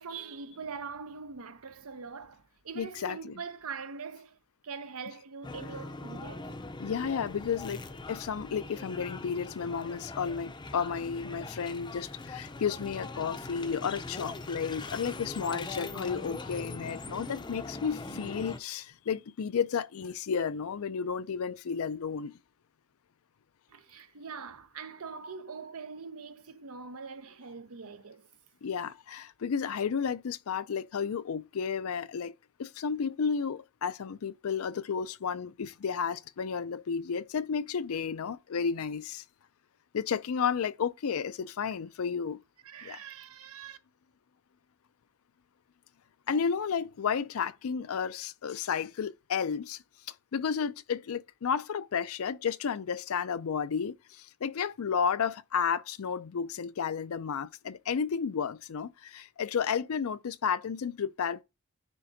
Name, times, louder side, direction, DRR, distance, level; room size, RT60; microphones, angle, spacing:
voice 1, 0.0-4.4 4.6-6.5 23.7-28.3 42.6-43.8, right 5 dB, 80° right, 0.8 m, -43 dB
voice 2, 2.8-3.4 6.8-7.8 8.1-22.4 28.6-32.3 32.6-39.2 39.9-42.4 42.8-43.0 46.3-49.8 50.3-61.4, left 6 dB, 75° left, 0.4 m, -32 dB
sound 1, 5.4-18.6, left 2 dB, 20° left, 0.5 m, -41 dB
9.9 x 3.6 x 2.7 m
head